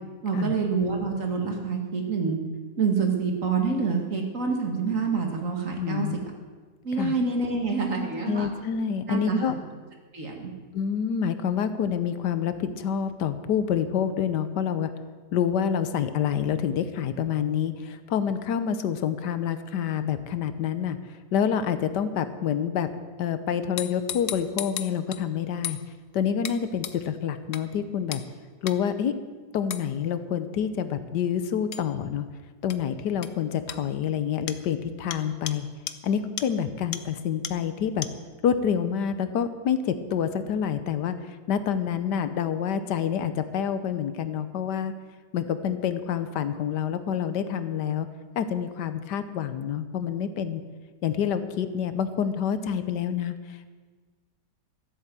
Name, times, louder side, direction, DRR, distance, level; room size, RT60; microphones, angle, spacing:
voice 1, 0.2-2.4 2.8-6.1 6.8-8.5 9.1-9.4 10.1-10.5, right 5 dB, 50° right, 2 dB, 2.1 m, -27 dB
voice 2, 5.8-6.2 7.0-7.1 8.3-9.5 10.7-14.9 15.3-21.0 21.3-22.9 23.2-25.8 26.1-28.2 28.6-29.1 29.5-32.3 32.6-35.7 36.0-38.1 38.4-44.9 45.3-48.1 48.4-50.6 51.0-53.7, left 8 dB, 80° left, 11 dB, 1.5 m, -27 dB
sound 1, 23.8-25.2 25.6-25.8 26.4-26.6 26.8-27.0 27.5-27.6 28.1-28.3 28.7-28.8 29.7-29.8 31.7-31.8 32.7-32.8 33.2-33.3 33.7-33.8 34.5-34.6 35.1-35.2 35.5-35.6 35.9-36.0 36.4-36.5 36.9-37.0 37.4-37.5 38.0-38.1, left 10 dB, 60° left, 0.9 m, -33 dB
13.5 x 8.5 x 7.5 m, 1.4 s
omnidirectional pair, 1.8 m